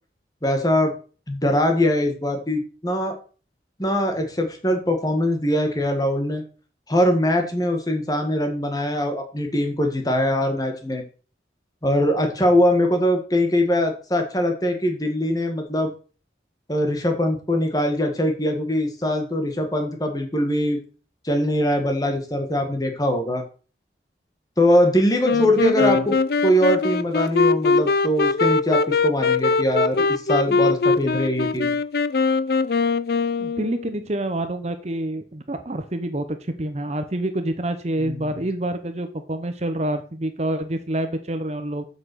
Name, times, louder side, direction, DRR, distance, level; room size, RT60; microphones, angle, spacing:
voice 1, 0.4-0.9 1.3-3.2 3.8-6.4 6.9-11.0 11.8-15.9 16.7-20.8 21.2-23.4 24.6-26.2 26.4-31.7 38.0-38.4, equal, 20° left, 4 dB, 1.8 m, -22 dB
Wind instrument woodwind instrument, 25.2-34.0, left 4 dB, 60° left, 0.5 m, -21 dB
voice 2, 33.4-41.8, right 1 dB, 35° right, 8 dB, 0.8 m, -27 dB
7.7 x 6.0 x 6.3 m, 0.38 s
head